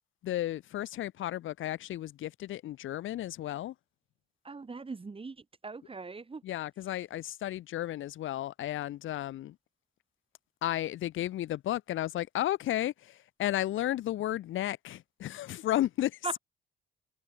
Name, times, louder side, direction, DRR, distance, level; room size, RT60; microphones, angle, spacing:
voice 1, 0.2-3.7 6.4-9.5 10.6-16.2, left 13 dB, 80° left, 2.3 m, -33 dB
voice 2, 4.4-5.4 5.6-6.4 16.2-16.4, right 4 dB, 30° right, 4.9 m, -39 dB
cardioid pair, 90°, 20 cm